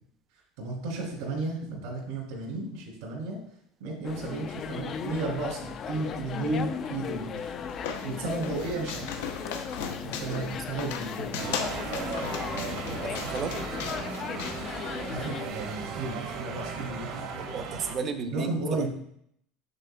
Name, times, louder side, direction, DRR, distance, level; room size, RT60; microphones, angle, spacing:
voice 1, 0.6-3.4 3.8-7.5 8.0-9.2 10.0-11.4 15.1-17.3 18.3-18.9, right 2 dB, 80° right, -2 dB, 2.5 m, -33 dB
sound 1, 4.0-15.5, left 6 dB, 35° left, 0.4 m, -37 dB
sound 2, 7.1-15.3, left 6 dB, 90° left, 0.7 m, -38 dB
sound 3, 11.4-18.0, right 5 dB, 55° right, 1.1 m, -36 dB
voice 2, 13.0-13.6 17.5-18.9, right 5 dB, 35° right, 8 dB, 0.6 m, -34 dB
6.7 x 6.7 x 2.2 m, 0.69 s
supercardioid pair, 135°, 0 cm